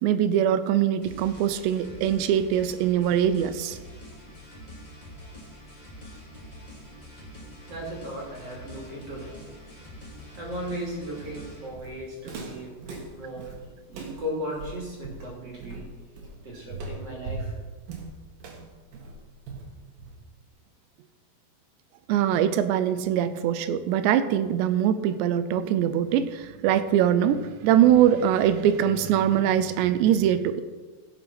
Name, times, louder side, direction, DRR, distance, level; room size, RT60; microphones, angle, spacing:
voice 1, 0.0-3.8 22.1-30.6, right 10 dB, 85° right, 12 dB, 2.8 m, -22 dB
Fast paced metal loop, 1.0-11.7, equal, 15° left, 1.6 m, -45 dB
voice 2, 7.7-17.7, equal, 40° right, -3 dB, 3.3 m, -37 dB
Walk footsteps, 11.2-20.4, right 3 dB, 60° right, 3.0 m, -40 dB
15.5 x 7.4 x 5.9 m, 1.4 s
omnidirectional pair, 5.1 m